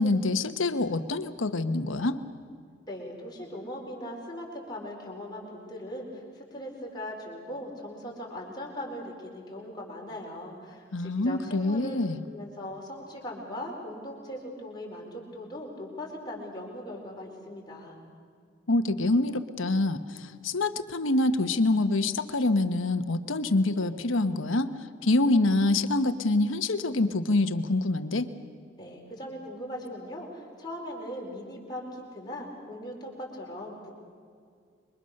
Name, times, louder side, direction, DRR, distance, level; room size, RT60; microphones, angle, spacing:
voice 1, 0.0-2.2 10.9-12.2 18.7-24.7 25.0-28.3, left 2 dB, 85° left, 10 dB, 1.2 m, -26 dB
voice 2, 2.9-6.1 6.3-18.0 28.8-33.9, left 1 dB, 20° left, -2 dB, 4.6 m, -39 dB
26.5 x 24.0 x 6.6 m, 2.2 s
head